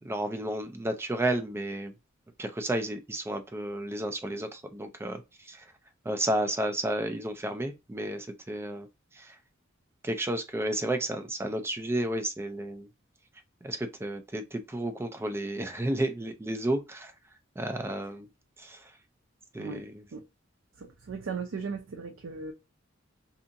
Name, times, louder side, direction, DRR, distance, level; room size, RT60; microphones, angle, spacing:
voice 1, 0.0-1.9 2.4-5.6 6.1-8.9 9.2-9.3 10.0-12.9 13.6-17.1 17.6-18.3 18.6-18.8 19.5-19.9, right 1 dB, 10° right, 0.4 m, -32 dB
voice 2, 20.8-22.5, right 5 dB, 75° right, 0.5 m, -37 dB
2.7 x 2.6 x 2.5 m
head